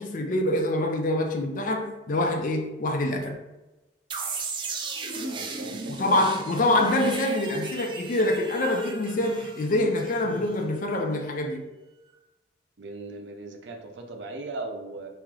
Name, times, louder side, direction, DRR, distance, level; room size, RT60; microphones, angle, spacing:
voice 1, 0.0-3.4 5.9-11.6, left 1 dB, 45° left, 0.4 m, -25 dB
sound 1, 4.1-10.9, right 4 dB, 25° right, 0.4 m, -36 dB
voice 2, 5.1-7.1 12.8-15.1, right 2 dB, 70° right, 0.6 m, -39 dB
3.1 x 2.9 x 3.7 m
head